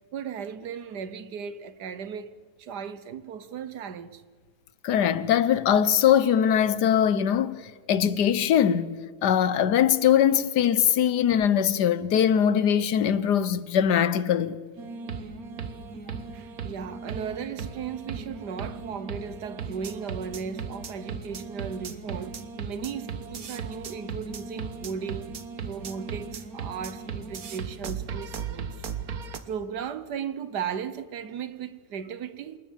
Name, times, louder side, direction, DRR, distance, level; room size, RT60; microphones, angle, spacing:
voice 1, 0.1-2.3 2.6-4.2 16.3-28.8 29.4-32.6, right 7 dB, 80° right, 1.7 m, -36 dB
voice 2, 4.8-7.6 7.9-14.6, left 9 dB, 85° left, 1.5 m, -22 dB
sound 1, 14.8-29.4, right 5 dB, 65° right, 1.7 m, -37 dB
27.5 x 19.5 x 7.4 m
omnidirectional pair, 1.7 m